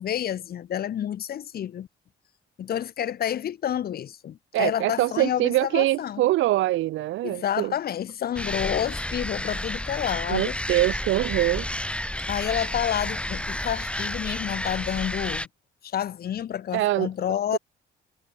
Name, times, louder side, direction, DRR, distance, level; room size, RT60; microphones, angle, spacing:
voice 1, 0.0-1.9 2.6-6.2 7.2-10.6 12.3-15.5 15.8-17.6, left 10 dB, 50° left, 0.7 m, -29 dB
voice 2, 4.5-7.7 10.3-11.7 16.7-17.1 17.5-17.6, right 16 dB, 75° right, 0.5 m, -24 dB
sound 1, 8.3-15.5, left 1 dB, 5° left, 2.5 m, -31 dB
cardioid pair, 90°, 20 cm